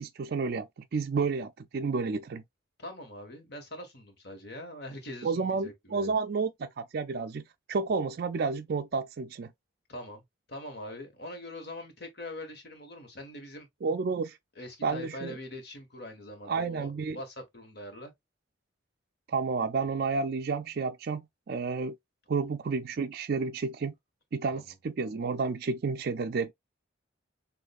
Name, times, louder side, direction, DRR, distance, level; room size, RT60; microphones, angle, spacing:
voice 1, 0.0-2.4 5.2-7.4 7.7-9.5 13.8-14.4 14.8-15.4 16.5-17.2 19.3-21.2 21.5-22.0 22.3-23.9 24.3-26.5, right 4 dB, 50° right, 0.4 m, -31 dB
voice 2, 2.8-6.1 9.9-10.2 10.5-13.7 14.5-18.1 24.5-24.6, left 1 dB, 55° left, 1.6 m, -43 dB
6.3 x 2.7 x 2.4 m
head